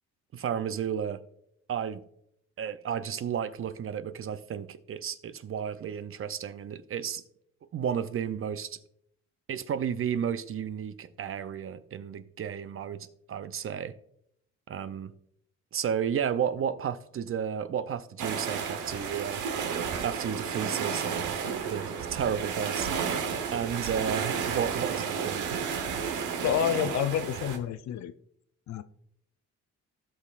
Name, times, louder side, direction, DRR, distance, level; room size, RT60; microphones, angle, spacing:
voice 1, 0.3-1.2 1.7-2.0 2.6-7.2 7.7-8.8 9.5-13.9 14.7-15.1 15.7-19.4 20.0-23.2 23.5-25.5, right 8 dB, 45° right, 0.6 m, -33 dB
sound 1, 18.2-27.6, right 6 dB, 80° right, 1.1 m, -32 dB
voice 2, 26.4-28.1 28.7-28.8, left 9 dB, 65° left, 0.6 m, -28 dB
16.0 x 5.7 x 2.4 m
cardioid pair, 90°, 30 cm